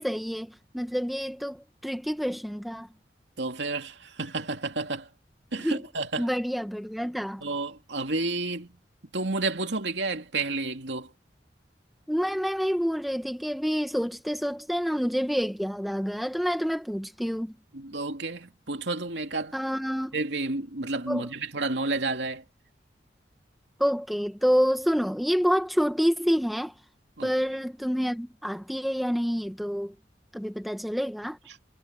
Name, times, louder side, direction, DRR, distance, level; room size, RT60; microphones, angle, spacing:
voice 1, 0.0-2.9 5.6-5.8 6.2-7.4 12.1-17.5 19.5-20.2 21.1-21.3 23.8-26.7 27.2-29.9 30.3-31.4, equal, ahead, 1.6 m, -28 dB
voice 2, 3.4-5.1 5.5-6.3 7.4-8.8 9.1-11.1 17.7-19.5 20.1-22.4 27.2-27.3, right 3 dB, 85° right, 2.7 m, -31 dB
head